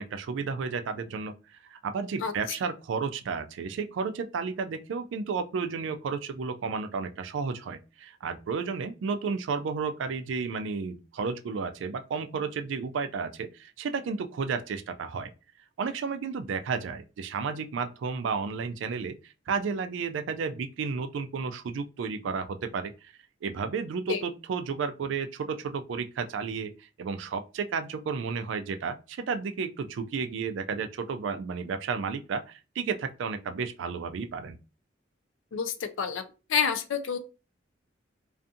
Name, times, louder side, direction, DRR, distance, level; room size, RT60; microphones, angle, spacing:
voice 1, 0.0-15.3 15.8-23.1 23.4-34.6, right 5 dB, 70° right, 0.3 m, -32 dB
voice 2, 35.5-36.2 36.5-37.2, left 6 dB, 85° left, 0.4 m, -28 dB
2.5 x 2.3 x 2.6 m
head